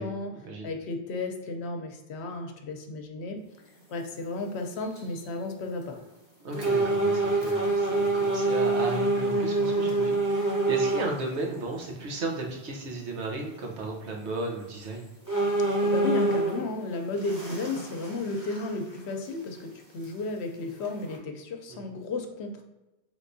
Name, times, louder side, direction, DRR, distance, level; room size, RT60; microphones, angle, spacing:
voice 1, 0.0-0.3 0.6-3.4 3.9-6.0 15.6-22.6, left 3 dB, 75° left, 4 dB, 0.9 m, -33 dB
sound 1, 4.1-4.3 4.8-5.2 5.8-5.9 6.5-11.2 11.8-11.9 14.3-14.4 14.8-14.9 15.3-16.7 17.1-19.0 19.3-19.4 20.0-20.1 20.8-21.2, right 2 dB, 20° right, 0.9 m, -26 dB
voice 2, 6.4-15.1 21.7-21.9, right 2 dB, 80° right, 0 dB, 1.1 m, -35 dB
4.4 x 3.4 x 2.6 m, 1.0 s
omnidirectional pair, 1.1 m